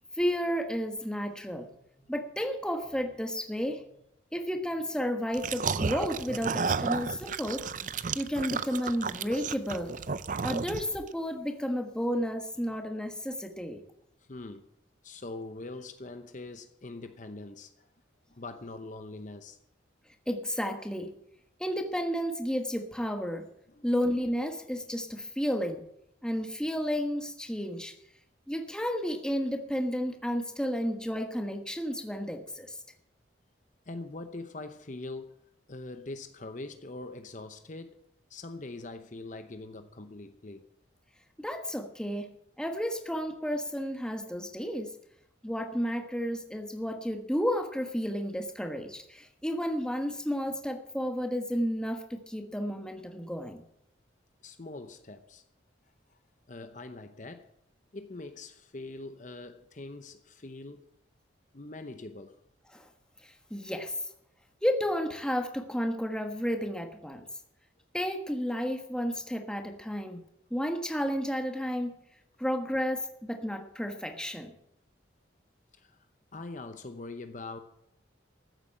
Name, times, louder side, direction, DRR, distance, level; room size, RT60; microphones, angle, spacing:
voice 1, 0.1-4.0 4.3-7.7 8.1-9.9 10.4-13.8 20.3-21.1 21.6-23.5 23.8-25.8 26.2-27.9 28.5-32.8 41.4-45.0 45.4-53.6 62.7-62.9 63.2-64.1 64.6-67.3 67.9-70.2 70.5-71.9 72.4-74.5, equal, 5° left, 1.3 m, -32 dB
sound 1, 5.3-11.1, right 5 dB, 40° right, 0.5 m, -32 dB
voice 2, 14.2-14.7 15.0-17.9 18.3-19.6 23.7-23.9 33.9-35.4 35.7-38.0 38.3-40.7 54.4-55.4 56.1-56.2 56.5-57.5 57.9-60.8 61.5-62.4 75.7-76.0 76.3-77.6, left 2 dB, 40° left, 0.8 m, -43 dB
14.5 x 8.3 x 7.5 m
head